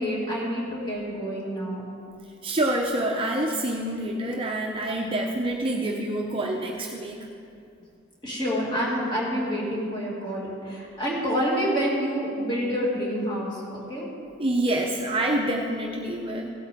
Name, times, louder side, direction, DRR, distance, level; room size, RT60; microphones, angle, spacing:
voice 1, 0.0-1.8 8.2-14.1, equal, 25° left, -5 dB, 2.4 m, -28 dB
voice 2, 2.4-7.2 14.4-16.5, right 1 dB, 25° right, 0 dB, 0.7 m, -27 dB
16.5 x 8.6 x 3.6 m, 2.6 s
head